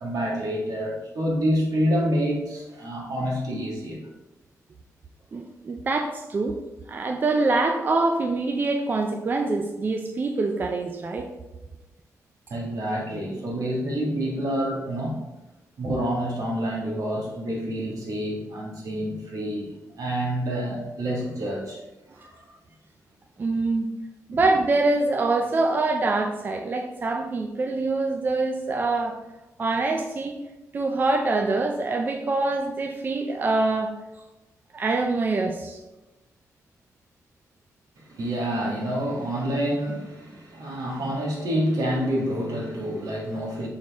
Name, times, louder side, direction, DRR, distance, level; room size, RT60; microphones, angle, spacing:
voice 1, 0.0-4.0 12.5-15.2 15.8-21.8 22.2-22.6 24.3-24.4 38.0-43.7, equal, 75° right, -2 dB, 1.7 m, -28 dB
voice 2, 5.3-6.6 6.9-11.3 23.4-23.9 24.3-29.1 29.6-30.4 30.7-33.9 34.7-35.8, right 3 dB, 35° right, 4 dB, 0.4 m, -25 dB
6.3 x 4.3 x 3.5 m, 1.0 s
wide cardioid pair, 150°, 6 cm